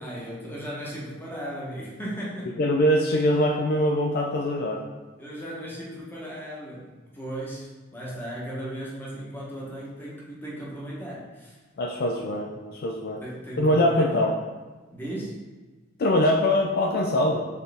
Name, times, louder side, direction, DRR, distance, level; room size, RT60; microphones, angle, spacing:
voice 1, 0.0-2.5 5.2-11.6 13.2-14.2 14.9-15.4, right 1 dB, 10° left, -5 dB, 1.0 m, -36 dB
voice 2, 2.6-4.9 11.8-13.2 13.6-14.3 16.0-17.5, left 1 dB, 50° left, 1 dB, 0.3 m, -23 dB
4.5 x 3.3 x 3.3 m, 1.3 s
head